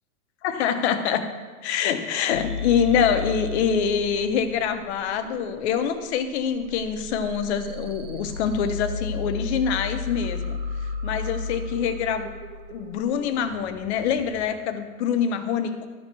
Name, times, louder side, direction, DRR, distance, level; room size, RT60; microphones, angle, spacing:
voice 1, 0.4-1.3 1.6-10.6 11.0-12.3 12.7-15.9, left 7 dB, 50° left, 8 dB, 1.1 m, -25 dB
sound 1, 2.3-14.4, left 3 dB, 90° right, 1.7 m, -34 dB
13.0 x 4.7 x 6.8 m, 1.5 s
hypercardioid pair, 135°, 44 cm